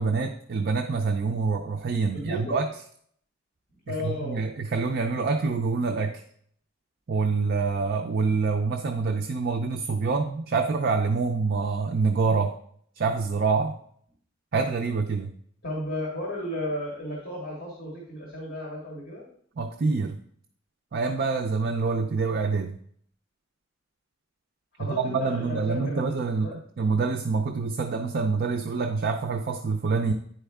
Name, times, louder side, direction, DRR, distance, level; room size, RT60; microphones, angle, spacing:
voice 1, 0.0-2.7 4.0-6.2 7.1-12.5 13.0-13.8 14.5-15.3 19.6-20.2 20.9-22.8 24.9-30.1, right 4 dB, 55° right, 4 dB, 0.5 m, -26 dB
voice 2, 2.1-2.6 3.9-4.5 15.6-19.3 24.8-26.1 26.4-26.5, left 1 dB, 50° left, -3 dB, 1.9 m, -34 dB
9.8 x 4.5 x 3.5 m, 0.63 s
head